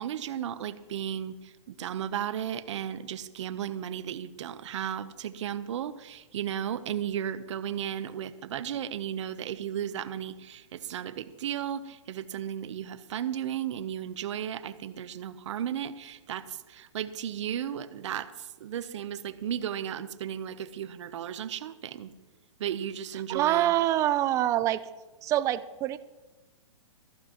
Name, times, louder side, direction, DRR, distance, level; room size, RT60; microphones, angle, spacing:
voice 1, 0.0-22.1 22.6-23.7, right 9 dB, 60° right, 13 dB, 0.9 m, -35 dB
voice 2, 23.3-24.8 25.2-26.0, right 13 dB, 20° right, 14 dB, 0.5 m, -25 dB
20.0 x 14.5 x 3.1 m, 1.2 s
hypercardioid pair, 145°, 17 cm